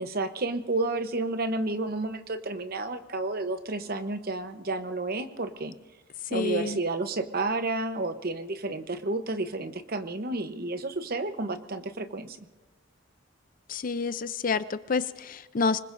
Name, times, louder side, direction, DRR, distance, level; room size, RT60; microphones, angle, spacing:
voice 1, 0.0-5.7 6.3-12.4, right 2 dB, 50° right, 9 dB, 0.9 m, -31 dB
voice 2, 6.3-6.8 13.7-15.8, left 4 dB, 45° left, 14 dB, 0.5 m, -28 dB
25.5 x 21.0 x 2.6 m, 1.3 s
head